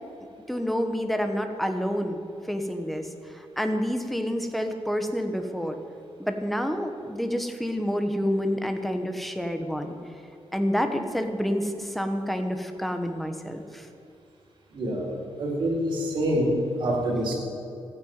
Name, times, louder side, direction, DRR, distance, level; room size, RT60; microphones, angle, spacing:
voice 1, 0.5-2.2 2.5-5.8 6.2-10.0 10.5-13.9, equal, ahead, 6 dB, 1.0 m, -28 dB
voice 2, 14.7-15.1 15.4-17.4, equal, 50° right, -3 dB, 4.1 m, -26 dB
14.0 x 9.6 x 9.3 m, 2.7 s
wide cardioid pair, 175°, 10 cm